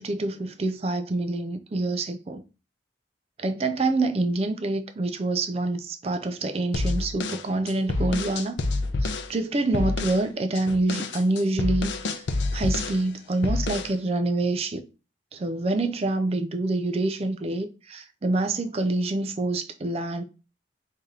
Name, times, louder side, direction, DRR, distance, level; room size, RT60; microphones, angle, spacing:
voice 1, 0.0-2.4 3.4-8.6 9.0-12.2 12.5-14.8 15.3-20.2, right 2 dB, 35° right, 0.4 m, -26 dB
sound 1, 6.7-9.3 9.7-10.2 10.6-13.0 13.4-14.0, left 2 dB, 70° left, 0.5 m, -28 dB
3.3 x 2.7 x 3.7 m
head